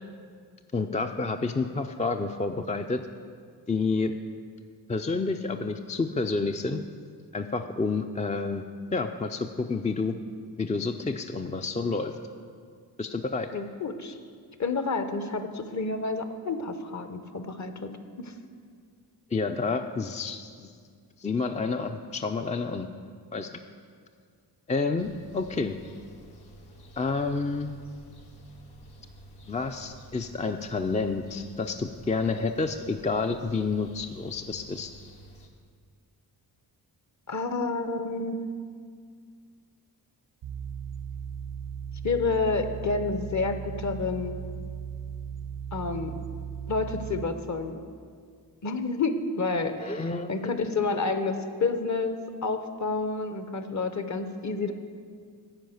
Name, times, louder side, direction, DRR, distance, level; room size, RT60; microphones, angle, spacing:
voice 1, 0.7-3.0 3.7-4.1 4.9-6.8 7.3-8.6 8.9-10.2 10.6-12.1 13.0-13.5 19.3-20.7 21.2-22.9 23.3-23.5 24.7-25.8 27.0-27.7 29.5-34.9 49.8-50.3, left 4 dB, 15° left, 6 dB, 0.4 m, -29 dB
voice 2, 13.5-14.2 14.6-17.9 18.2-18.3 37.3-38.5 42.0-44.4 45.7-46.1 46.7-47.8 48.6-54.7, left 3 dB, 40° left, 9 dB, 0.9 m, -29 dB
sound 1, 25.0-35.5, right 1 dB, 65° left, 1.3 m, -50 dB
sound 2, 40.4-47.2, right 7 dB, 75° right, 0.9 m, -37 dB
10.5 x 4.9 x 7.8 m, 2.1 s
cardioid pair, 55°, 42 cm